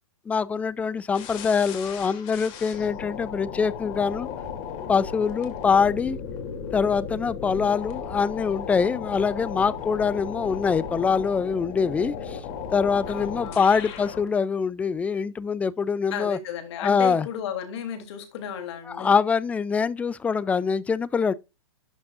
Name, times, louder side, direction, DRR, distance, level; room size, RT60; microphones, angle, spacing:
voice 1, 0.3-4.3 4.9-6.2 6.7-12.4 12.7-16.4 16.8-17.3 18.9-21.3, left 5 dB, 10° left, 0.3 m, -24 dB
sound 1, 1.1-14.3, left 7 dB, 40° left, 2.8 m, -35 dB
voice 2, 13.1-13.6 16.1-19.2, left 8 dB, 55° left, 3.0 m, -34 dB
11.5 x 6.1 x 2.5 m
hypercardioid pair, 135°, 17 cm